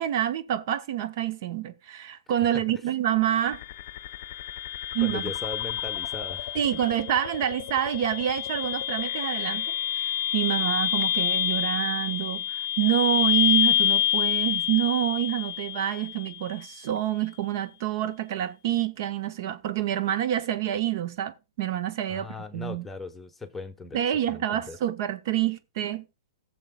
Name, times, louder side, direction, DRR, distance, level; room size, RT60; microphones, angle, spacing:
voice 1, 0.0-3.6 4.9-5.2 6.5-9.7 9.9-22.3 22.5-22.9 23.9-26.0, right 12 dB, 55° right, 0.8 m, -27 dB
sound 1, 3.5-16.5, left 11 dB, 50° left, 0.6 m, -28 dB
voice 2, 5.0-6.6 22.1-24.0 24.3-24.8, left 3 dB, 10° left, 1.1 m, -38 dB
18.0 x 7.0 x 2.3 m
hypercardioid pair, 130°, 2 cm